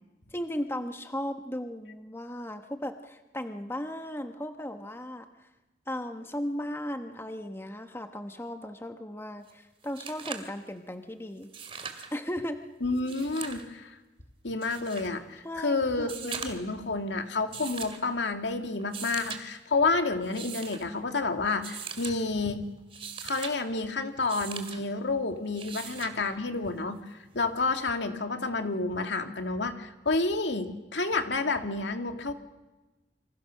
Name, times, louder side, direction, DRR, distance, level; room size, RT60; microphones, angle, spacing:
voice 1, 0.3-5.5 5.9-11.5 12.1-12.6 15.4-16.1, left 1 dB, 15° left, 7 dB, 1.2 m, -36 dB
sound 1, 9.5-9.6 9.8-10.5 11.4-12.1 13.0-13.6 14.6-15.1 16.0-16.7 17.5-18.0 18.8-19.4 20.2-20.8 21.6-22.2 22.8-23.5 24.3-24.8 25.5-26.2 27.6-27.7, right 6 dB, 30° right, 2.4 m, -40 dB
voice 2, 12.8-14.0 14.4-22.7 23.2-32.3, left 3 dB, 75° left, 6 dB, 2.2 m, -30 dB
28.0 x 25.5 x 6.5 m, 1.1 s
head